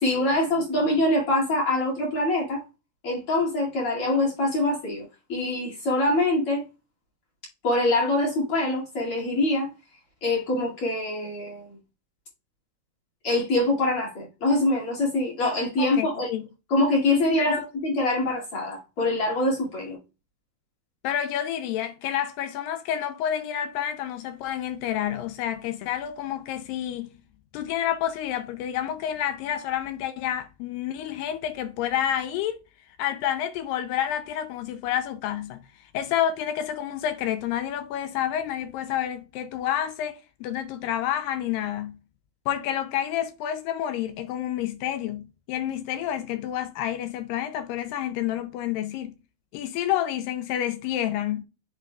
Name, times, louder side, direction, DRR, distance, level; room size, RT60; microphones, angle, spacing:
voice 1, 0.0-2.6 3.0-6.6 7.6-9.7 10.2-11.8 13.2-16.3 16.7-20.0, left 2 dB, 40° left, 2.6 m, -24 dB
voice 2, 15.8-16.4 17.4-17.7 21.0-27.1 27.5-32.6 33.0-35.6 35.9-42.0 42.5-49.1 49.5-51.4, left 10 dB, 85° left, 2.0 m, -29 dB
10.5 x 4.3 x 2.3 m
omnidirectional pair, 4.4 m